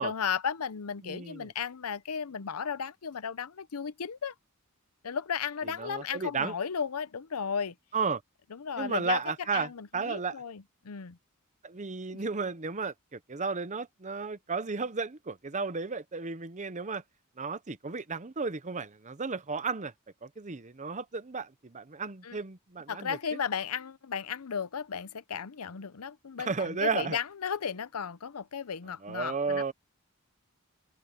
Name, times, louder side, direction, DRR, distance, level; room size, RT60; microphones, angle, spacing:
voice 1, 0.0-4.3 5.0-7.8 8.5-9.2 9.5-11.2 12.1-12.2 22.2-22.4 22.9-29.7, left 7 dB, 85° left, 0.7 m, -35 dB
voice 2, 1.0-1.5 5.8-6.5 7.9-8.2 8.8-10.4 11.6-17.0 17.4-19.9 20.2-23.2 26.4-27.2 29.0-29.7, right 4 dB, 35° right, 0.9 m, -33 dB
open air
head